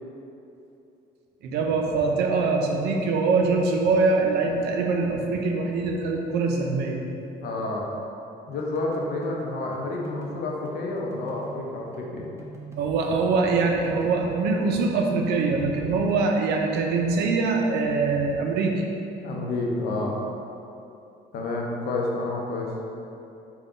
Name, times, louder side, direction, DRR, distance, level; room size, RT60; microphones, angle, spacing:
voice 1, 1.4-7.0 12.8-18.8, right 4 dB, 75° right, 1 dB, 0.5 m, -23 dB
voice 2, 7.4-7.9 8.5-12.2 19.2-20.2 21.3-22.7, left 2 dB, 70° left, -1 dB, 0.6 m, -29 dB
sound 1, 8.6-12.1 12.4-16.4, right 4 dB, 15° right, 0.5 m, -43 dB
3.6 x 2.3 x 3.7 m, 2.8 s
cardioid pair, 110°, 17 cm